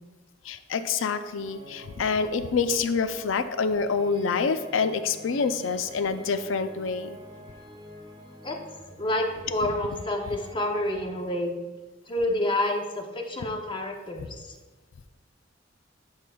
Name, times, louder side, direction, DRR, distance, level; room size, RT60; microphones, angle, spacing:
voice 1, 0.4-7.2, left 5 dB, 80° left, 11 dB, 0.4 m, -27 dB
sound 1, 1.4-11.2, equal, 25° right, 0.7 m, -48 dB
voice 2, 9.0-11.6 12.1-14.6, left 1 dB, 25° left, 3 dB, 0.7 m, -28 dB
11.5 x 4.8 x 2.3 m, 1.2 s
head